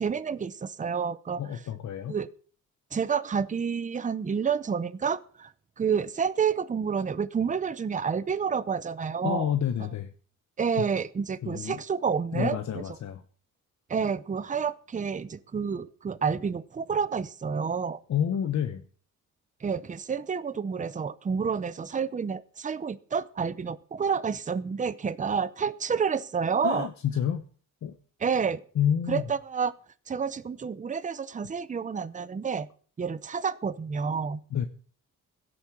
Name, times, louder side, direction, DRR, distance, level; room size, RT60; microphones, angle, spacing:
voice 1, 0.0-1.4 2.1-2.3 2.9-5.5 5.8-9.5 10.6-12.8 13.9-18.0 19.6-26.9 28.2-28.6 29.1-29.7 30.1-32.7 33.0-34.4, right 6 dB, 25° right, 16 dB, 0.7 m, -29 dB
voice 2, 1.4-2.2 9.2-10.1 10.7-10.8 11.4-11.8 12.3-13.2 18.1-18.8 26.6-27.4 27.8-28.0 28.7-29.2 34.5-34.7, left 9 dB, 60° left, 7 dB, 1.1 m, -29 dB
16.5 x 8.3 x 6.2 m, 0.44 s
wide cardioid pair, 140°, 32 cm